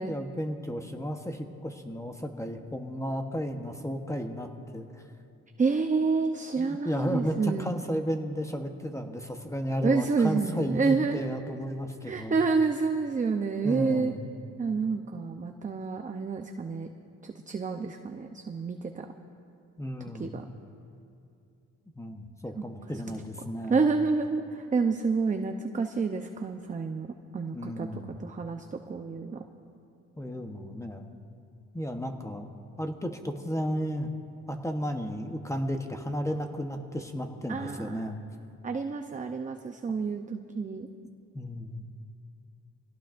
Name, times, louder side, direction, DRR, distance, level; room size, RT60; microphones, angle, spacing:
voice 1, 0.0-5.0 6.6-12.4 13.6-14.2 19.8-20.3 22.0-23.8 27.5-28.2 30.2-31.1 31.7-32.5 32.8-34.1 34.5-38.2 41.3-41.8, equal, 10° left, 4 dB, 1.1 m, -33 dB
voice 2, 5.6-7.7 9.8-11.2 12.0-14.1 14.6-16.9 17.2-19.1 20.2-20.4 23.7-27.1 27.3-27.9 28.2-29.4 37.5-38.0 38.6-40.9, right 4 dB, 25° right, 5 dB, 0.7 m, -28 dB
24.0 x 17.5 x 2.6 m, 2.5 s
cardioid pair, 90°, 30 cm